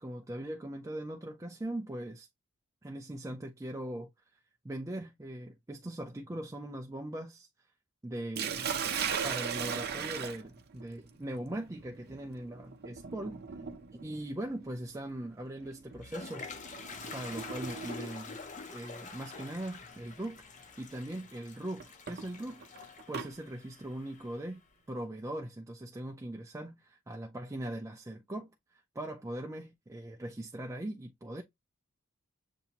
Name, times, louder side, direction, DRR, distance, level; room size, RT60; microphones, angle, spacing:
voice 1, 0.0-2.3 2.8-4.1 4.6-7.5 8.0-8.7 9.2-13.4 14.0-16.5 17.1-18.4 18.7-31.4, right 1 dB, 15° right, 0.5 m, -40 dB
Sink (filling or washing), 8.4-18.3 19.4-19.7 20.2-20.3 21.8-23.3, right 7 dB, 50° right, 0.7 m, -39 dB
Toilet flush, 15.7-24.5, left 4 dB, 35° left, 0.7 m, -47 dB
6.9 x 2.6 x 2.9 m
head